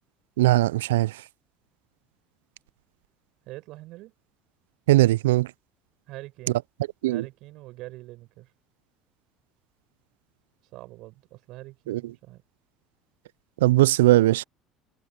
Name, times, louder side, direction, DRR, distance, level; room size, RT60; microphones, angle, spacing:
voice 1, 0.4-1.1 4.9-5.5 7.0-7.2 11.9-12.0 13.6-14.4, right 17 dB, 90° right, 0.3 m, -19 dB
voice 2, 3.5-4.1 6.1-6.6 7.1-8.5 10.7-12.4, right 18 dB, 65° right, 6.6 m, -43 dB
hypercardioid pair, 75°, 0 cm